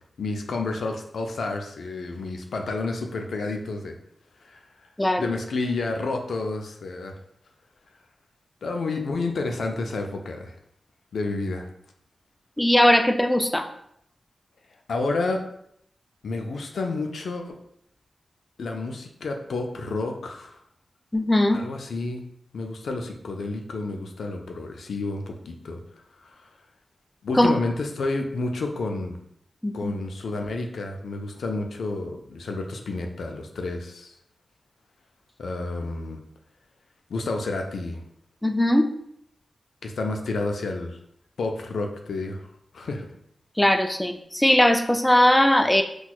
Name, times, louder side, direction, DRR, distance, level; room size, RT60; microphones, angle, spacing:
voice 1, 0.2-3.9 4.4-4.6 5.2-7.1 8.6-10.5 11.1-11.7 14.9-15.4 16.2-17.6 18.6-20.6 21.5-22.2 22.5-25.8 26.2-26.4 27.2-29.2 29.7-34.1 35.4-36.2 37.1-38.0 39.8-41.0 41.4-43.1, left 3 dB, 85° left, 3 dB, 0.4 m, -30 dB
voice 2, 5.0-5.3 12.6-13.7 21.1-21.6 27.3-27.5 29.6-29.9 38.4-38.8 43.6-45.8, left 1 dB, 10° left, 7 dB, 0.3 m, -19 dB
4.2 x 2.2 x 2.2 m, 0.71 s
cardioid pair, 65°, 0 cm